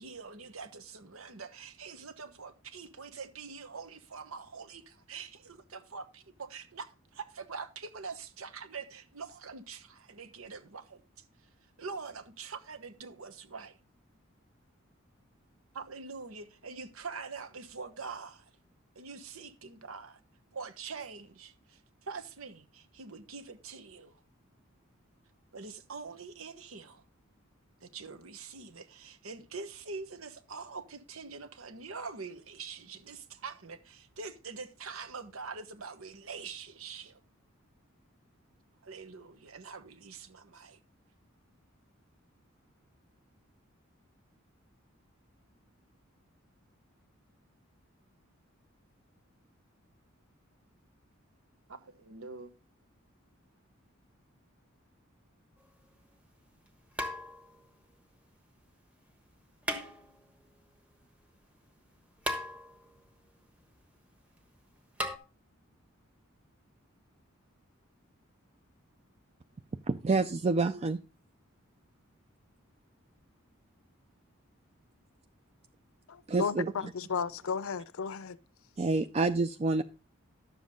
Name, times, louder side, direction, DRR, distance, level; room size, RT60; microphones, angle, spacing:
voice 1, 0.0-11.0 11.8-13.8 15.7-18.5 18.9-20.2 20.5-24.2 25.5-27.0 27.8-37.2 38.8-40.8 51.7-52.5, right 5 dB, 90° right, 1.2 m, -44 dB
sound 1, 55.6-55.7 57.0-57.7 59.6-60.4 62.2-63.0 65.0-65.2, left 1 dB, 5° right, 1.1 m, -36 dB
voice 2, 69.9-71.0 76.3-76.7 78.8-79.8, right 3 dB, 30° right, 0.4 m, -28 dB
voice 3, 76.1-78.4, left 6 dB, 80° left, 0.5 m, -34 dB
11.0 x 7.4 x 3.7 m
head